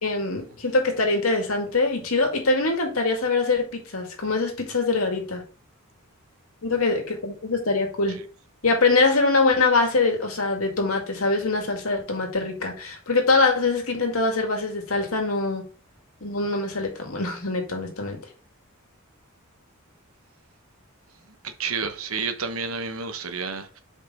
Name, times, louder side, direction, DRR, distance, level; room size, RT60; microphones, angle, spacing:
voice 1, 0.0-5.4 6.6-8.2 8.6-15.6 16.2-18.2, left 3 dB, 85° left, 2.1 m, -23 dB
voice 2, 21.4-23.8, right 5 dB, 80° right, 1.0 m, -30 dB
5.1 x 4.3 x 5.3 m
head